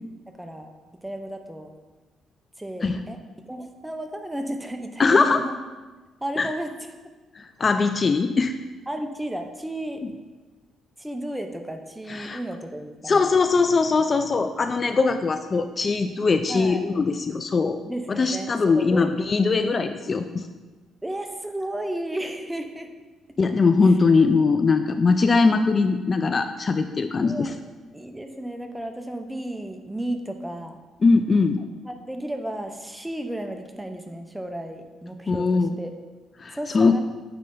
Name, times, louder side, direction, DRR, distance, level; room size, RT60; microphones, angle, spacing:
voice 1, 0.3-0.7 1.0-1.7 2.6-3.2 3.5-5.6 6.2-6.8 8.9-10.0 11.0-13.2 16.5-16.8 17.8-19.1 21.0-22.9 23.8-23.9 27.2-27.5 27.9-30.8 31.8-35.9 36.5-37.0, right 1 dB, 10° right, 5 dB, 0.7 m, -33 dB
voice 2, 5.0-5.4 6.4-6.5 7.4-8.5 12.1-12.4 13.1-17.8 18.1-20.5 23.4-27.5 31.0-31.6 35.3-35.7 36.4-37.0, left 4 dB, 35° left, 8 dB, 0.3 m, -21 dB
9.1 x 3.3 x 3.8 m, 1.2 s
cardioid pair, 90°, 0 cm